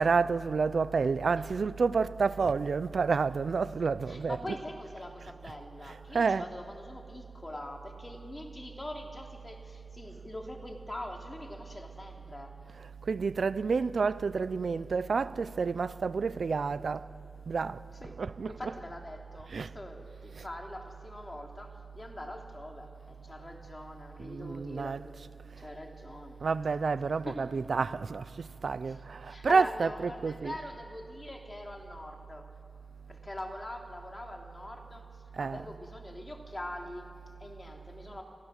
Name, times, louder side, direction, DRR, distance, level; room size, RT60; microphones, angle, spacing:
voice 1, 0.0-4.6 5.9-6.5 13.1-17.1 17.5-17.8 18.2-18.7 19.5-19.7 20.4-20.5 24.2-25.1 26.4-30.6 35.4-35.7, right 5 dB, 80° right, 0.5 m, -29 dB
voice 2, 4.1-12.5 18.0-18.2 18.5-25.0 25.6-26.4 27.2-27.4 28.9-29.0 29.2-32.5 33.1-35.0 35.4-38.2, left 1 dB, 30° left, 3.1 m, -43 dB
26.0 x 15.5 x 6.6 m
cardioid pair, 45°, 0 cm